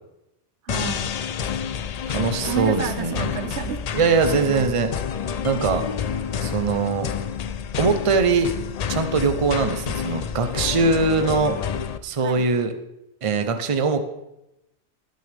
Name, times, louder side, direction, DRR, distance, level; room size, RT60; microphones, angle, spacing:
voice 1, 0.6-1.2 2.4-4.0 4.5-4.8 12.2-12.5, right 7 dB, 70° right, 10 dB, 1.0 m, -31 dB
sound 1, 0.7-12.0, left 7 dB, 60° left, 0.4 m, -29 dB
voice 2, 2.1-3.3 4.0-4.9 5.4-5.8 6.4-7.1 7.8-8.5 8.9-11.6 12.0-12.7 13.2-14.0, right 4 dB, 35° right, 8 dB, 0.7 m, -21 dB
18.0 x 6.5 x 3.5 m, 0.89 s
omnidirectional pair, 1.2 m